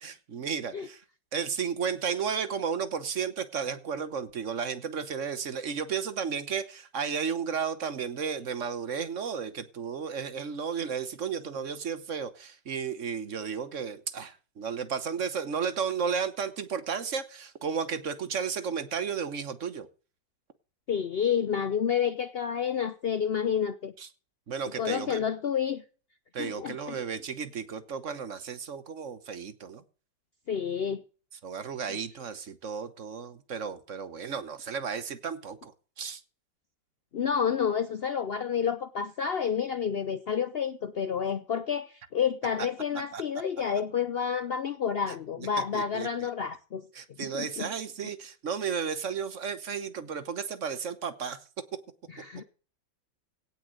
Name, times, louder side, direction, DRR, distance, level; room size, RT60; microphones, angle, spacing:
voice 1, 0.0-1.0 1.3-19.9 24.0-24.1 24.5-25.2 26.3-29.8 31.4-36.2 43.1-43.2 45.4-45.5 45.7-46.1 46.9-51.4, right 6 dB, 50° right, 13 dB, 1.2 m, -33 dB
voice 2, 20.9-23.9 24.8-25.8 26.4-27.0 30.5-31.0 31.9-32.0 37.1-46.8 47.2-47.7 52.1-52.4, left 7 dB, 75° left, 13 dB, 0.5 m, -29 dB
17.0 x 6.2 x 6.6 m, 0.38 s
omnidirectional pair, 1.9 m